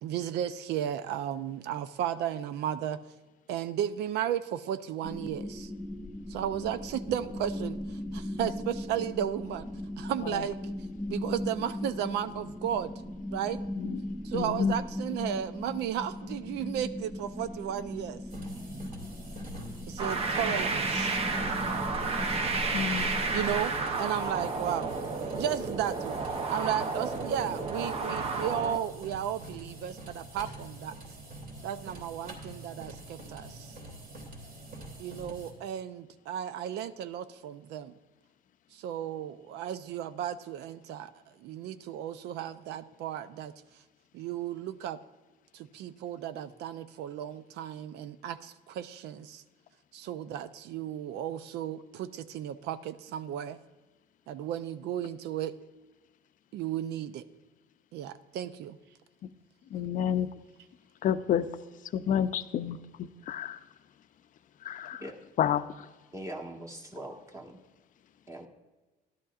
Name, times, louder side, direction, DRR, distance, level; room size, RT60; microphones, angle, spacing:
voice 1, 0.0-3.0 3.5-5.7 6.3-9.7 10.0-10.7 11.1-12.9 13.3-13.6 14.2-18.2 19.9-21.2 23.3-23.7 24.0-25.0 25.3-26.2 26.5-31.0 31.6-33.7 35.0-37.9 38.7-41.1 41.4-43.5 44.1-45.0 45.5-49.4 49.9-53.6 54.3-55.5 56.5-57.2 57.9-58.8, right 10 dB, 80° right, 13 dB, 0.5 m, -34 dB
sound 1, 5.0-23.6, left 1 dB, 10° left, 1.2 m, -38 dB
voice 2, 14.3-14.8 20.5-20.6 22.7-23.2 35.2-35.4 59.2-59.3 59.7-60.3 61.0-61.5 61.9-63.6 64.6-65.0 65.4-65.9, left 9 dB, 50° left, 12 dB, 0.5 m, -30 dB
sound 2, 18.3-35.5, right 1 dB, 55° right, 2.7 m, -45 dB
sound 3, 20.0-28.8, right 4 dB, 35° right, 0.7 m, -31 dB
voice 3, 66.1-67.6 68.3-68.5, right 1 dB, 15° right, 0 dB, 1.4 m, -41 dB
14.0 x 11.5 x 2.4 m, 1.2 s
cardioid pair, 110°, 17 cm